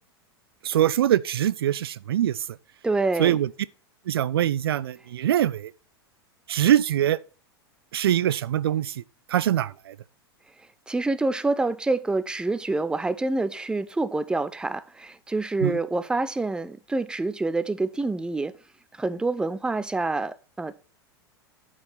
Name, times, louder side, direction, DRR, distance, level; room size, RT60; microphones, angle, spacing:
voice 1, 0.6-2.6 3.2-3.5 4.1-5.7 6.5-7.2 7.9-9.0 9.3-10.0 15.6-15.8, right 11 dB, 70° right, 0.4 m, -23 dB
voice 2, 2.8-3.4 10.9-18.5 19.0-20.7, right 3 dB, 5° right, 0.6 m, -27 dB
9.4 x 4.9 x 5.6 m
figure-of-eight pair, 90°, 13 cm